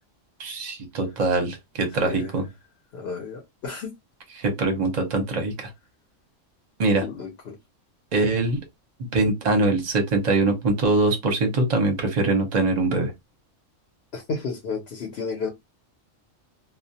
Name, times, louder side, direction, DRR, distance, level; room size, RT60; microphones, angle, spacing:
voice 1, 0.4-2.5 4.4-5.7 6.8-7.0 8.1-8.6 9.1-13.1, right 2 dB, 40° right, 0.7 m, -23 dB
voice 2, 2.0-2.3 2.9-3.9 7.0-7.5 14.1-15.5, left 4 dB, 55° left, 0.8 m, -32 dB
2.4 x 2.1 x 2.7 m
omnidirectional pair, 1.4 m